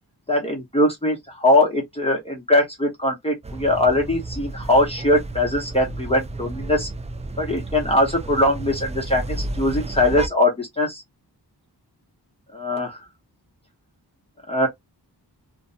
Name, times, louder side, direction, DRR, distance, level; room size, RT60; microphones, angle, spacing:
voice 1, 0.3-6.9 7.4-11.0 12.5-13.1 14.5-14.7, left 1 dB, 15° left, 0.9 m, -21 dB
sound 1, 3.4-10.3, right 2 dB, 20° right, 0.3 m, -32 dB
2.4 x 2.2 x 2.5 m
wide cardioid pair, 90°, 40 cm